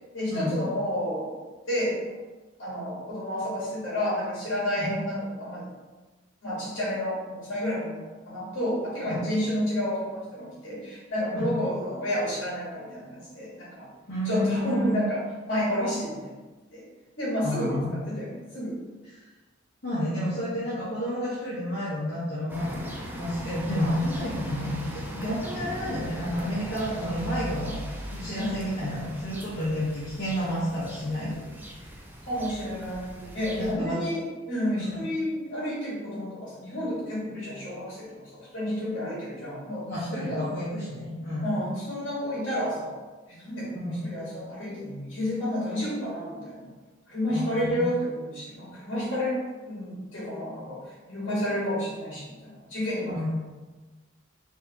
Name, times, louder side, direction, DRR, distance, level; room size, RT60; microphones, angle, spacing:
voice 1, 0.1-2.0 2.6-5.7 6.4-13.9 14.2-15.2 15.5-16.4 16.7-16.8 17.2-17.8 18.1-18.8 28.3-28.5 32.3-40.4 41.4-43.0 43.3-46.7 47.1-53.3, equal, 70° left, -7 dB, 1.3 m, -30 dB
voice 2, 14.1-15.0 17.4-18.0 19.1-19.2 19.8-22.8 23.1-27.8 28.1-31.4 33.5-34.0 34.7-35.0 39.9-41.6 43.7-43.9 47.3-47.9 53.0-53.3, equal, 50° left, -11 dB, 1.0 m, -30 dB
sound 1, 22.5-33.7, equal, 10° right, 0.4 m, -39 dB
4.7 x 2.8 x 2.7 m, 1.3 s
head